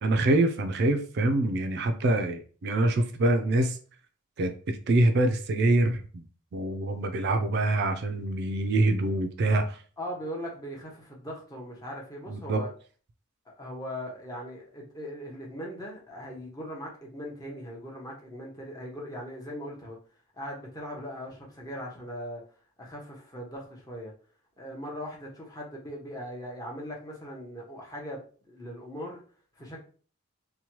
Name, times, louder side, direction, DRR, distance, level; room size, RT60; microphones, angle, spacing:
voice 1, 0.0-3.8 4.4-6.2 6.5-9.8 12.3-12.6, right 2 dB, 50° right, 7 dB, 0.3 m, -25 dB
voice 2, 10.0-12.7 13.6-20.0 20.3-22.4 22.8-24.1 24.6-28.2 28.5-29.2 29.6-29.8, equal, 15° left, -2 dB, 0.7 m, -39 dB
2.9 x 2.2 x 2.9 m, 0.41 s
head